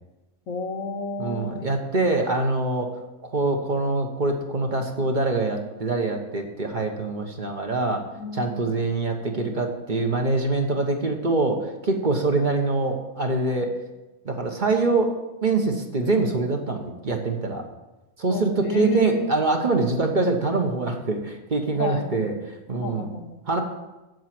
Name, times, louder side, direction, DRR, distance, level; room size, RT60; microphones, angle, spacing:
voice 1, 0.5-1.7 8.2-8.9 13.6-13.7 18.3-19.3 21.8-22.2 22.8-23.4, left 3 dB, 75° left, 6 dB, 1.3 m, -32 dB
voice 2, 1.2-2.9 3.2-8.0 8.3-13.7 14.2-15.1 15.4-17.6 18.2-22.3 22.7-23.0 23.5-23.6, right 3 dB, 40° right, 3 dB, 1.2 m, -24 dB
7.8 x 7.3 x 7.6 m, 1.1 s
omnidirectional pair, 1.4 m